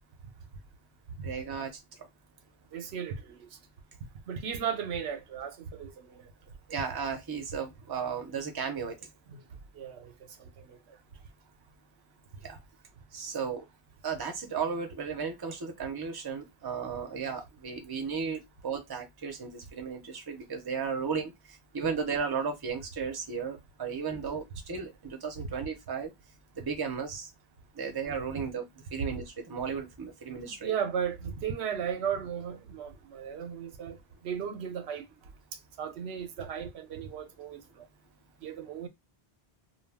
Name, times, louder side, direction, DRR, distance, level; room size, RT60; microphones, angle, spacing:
voice 1, 1.2-1.8 6.7-9.1 12.4-12.6 13.1-13.7 14.0-26.1 26.6-27.3 27.7-28.6 28.9-30.7, right 6 dB, 25° right, 0.6 m, -35 dB
voice 2, 2.7-3.6 4.3-6.2 9.3-9.4 9.7-10.8 25.4-25.5 30.5-34.0 34.2-35.0 35.8-37.8 38.4-38.9, right 8 dB, 85° right, 0.9 m, -36 dB
2.3 x 2.2 x 3.4 m
omnidirectional pair, 1.1 m